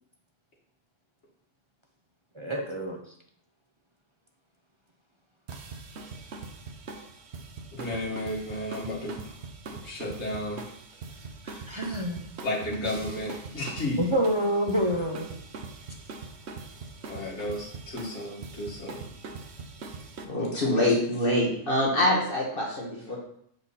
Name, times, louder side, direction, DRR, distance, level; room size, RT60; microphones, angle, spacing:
voice 1, 2.3-3.0 11.4-12.3 12.8-12.9 14.0-15.3, equal, 30° right, 2 dB, 0.6 m, -28 dB
sound 1, 5.5-20.2, right 4 dB, 65° right, 1.1 m, -42 dB
voice 2, 7.7-9.3 9.7-10.6 12.4-14.0 17.1-19.1 20.4-20.6, left 1 dB, 60° left, -5 dB, 2.3 m, -33 dB
voice 3, 20.2-23.2, left 1 dB, 45° left, -3 dB, 1.7 m, -25 dB
7.4 x 4.9 x 4.1 m, 0.69 s
omnidirectional pair, 1.3 m